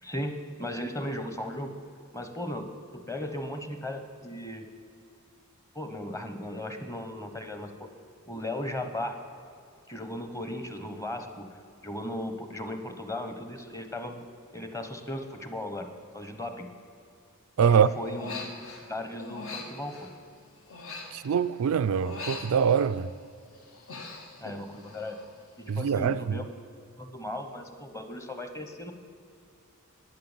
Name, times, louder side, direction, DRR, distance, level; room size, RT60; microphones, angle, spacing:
voice 1, 0.0-1.7 2.1-4.7 5.7-7.9 8.3-9.2 9.9-11.5 11.8-14.2 14.5-16.7 17.6-18.5 18.9-20.1 24.4-25.2 25.6-26.4 27.0-28.9, left 1 dB, 15° left, 1.0 m, -36 dB
voice 2, 17.6-17.9 21.1-23.1 25.7-26.4, right 7 dB, 70° right, 0.4 m, -24 dB
Human voice, 18.0-18.9 19.2-21.6 21.9-23.2 23.5-25.3 25.6-26.0, left 3 dB, 65° left, 1.8 m, -42 dB
11.5 x 9.6 x 7.3 m
head